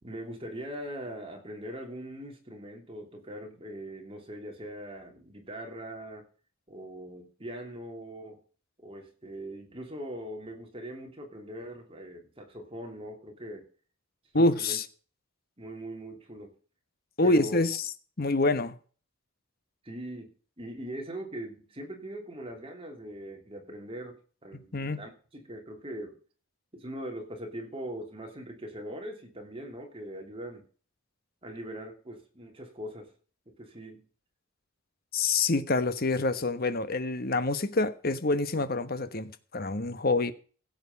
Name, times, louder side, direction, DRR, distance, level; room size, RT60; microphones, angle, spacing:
voice 1, 0.0-6.3 6.7-8.4 8.8-13.6 14.3-14.8 15.6-16.5 17.2-17.6 19.8-20.3 20.6-26.2 26.7-30.6 31.4-33.1 33.5-34.0, equal, 25° right, 3.0 m, -41 dB
voice 2, 14.3-14.8 17.2-17.8 18.2-18.7 24.7-25.0 35.1-40.3, left 2 dB, 45° left, 1.2 m, -26 dB
16.0 x 7.9 x 5.3 m
head